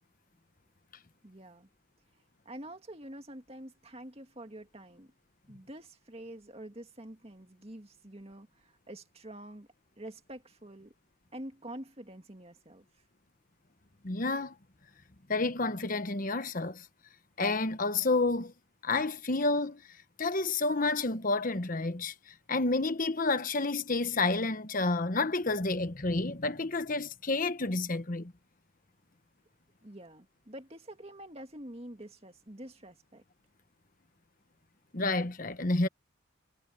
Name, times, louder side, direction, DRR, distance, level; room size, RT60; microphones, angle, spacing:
voice 1, 1.2-1.7 2.5-5.1 5.5-9.7 10.0-10.9 11.3-12.8 29.8-33.2, right 1 dB, 30° right, 2.2 m, -47 dB
voice 2, 14.0-14.5 15.3-16.8 17.4-18.5 18.8-19.8 20.2-22.1 22.5-28.3 34.9-35.9, left 3 dB, 40° left, 1.2 m, -30 dB
head